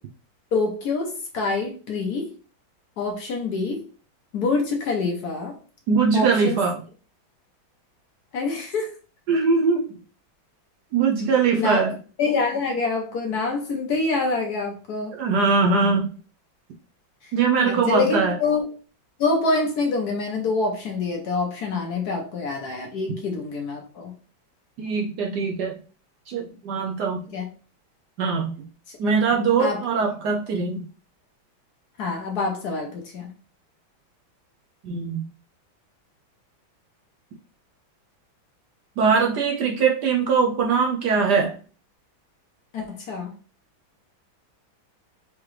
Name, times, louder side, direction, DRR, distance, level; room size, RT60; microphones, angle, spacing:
voice 1, 0.5-2.3 3.0-3.8 4.3-5.6 6.1-6.6 8.3-8.9 11.5-11.8 12.2-15.2 17.6-18.7 19.2-24.1 27.3-27.5 29.6-29.9 32.0-33.3 42.7-43.3, left 3 dB, 60° left, 2 dB, 1.2 m, -26 dB
voice 2, 5.9-6.8 9.3-9.9 10.9-12.0 15.1-16.1 17.3-18.3 24.8-25.8 26.3-27.2 28.2-28.5 29.0-30.8 34.8-35.3 39.0-41.5, right 5 dB, 70° right, 2 dB, 1.1 m, -21 dB
4.9 x 3.0 x 3.1 m, 0.37 s
omnidirectional pair, 2.2 m